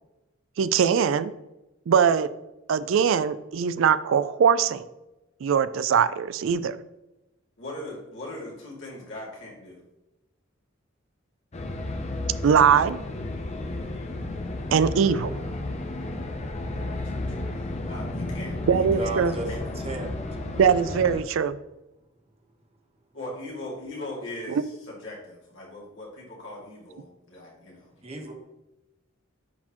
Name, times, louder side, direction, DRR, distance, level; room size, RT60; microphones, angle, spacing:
voice 1, 0.6-1.3 1.9-2.3 2.7-4.8 5.4-6.8 12.4-13.0 14.7-15.3 18.7-19.3 20.6-21.6 24.5-24.6, right 7 dB, 75° right, 14 dB, 0.4 m, -21 dB
voice 2, 7.6-9.8 13.6-14.0 16.7-19.6 23.1-27.9, left 1 dB, 70° left, -4 dB, 2.4 m, -40 dB
sound 1, 11.5-21.2, left 2 dB, 35° left, 0.6 m, -32 dB
voice 3, 19.0-20.1 28.0-28.3, right 2 dB, 30° right, 2 dB, 1.1 m, -33 dB
9.7 x 4.3 x 3.0 m, 0.96 s
head